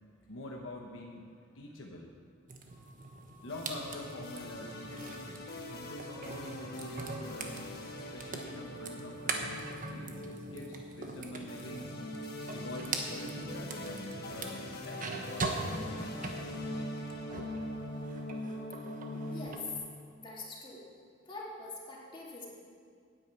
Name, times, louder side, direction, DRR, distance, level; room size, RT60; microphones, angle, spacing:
voice 1, 0.3-1.3 1.5-2.1 3.4-5.4 5.7-11.9 12.5-16.3, left 1 dB, 85° left, 0 dB, 1.1 m, -46 dB
sound 1, 2.5-17.6 18.0-19.6, right 3 dB, 45° right, 1.1 m, -42 dB
sound 2, 2.7-7.5, right 1 dB, 25° right, 1.6 m, -60 dB
sound 3, 3.5-19.5, left 1 dB, 55° left, 1.5 m, -42 dB
voice 2, 19.3-19.7 20.2-20.8 21.3-22.5, left 3 dB, 25° left, -5 dB, 2.4 m, -44 dB
10.0 x 8.7 x 8.2 m, 2.1 s
head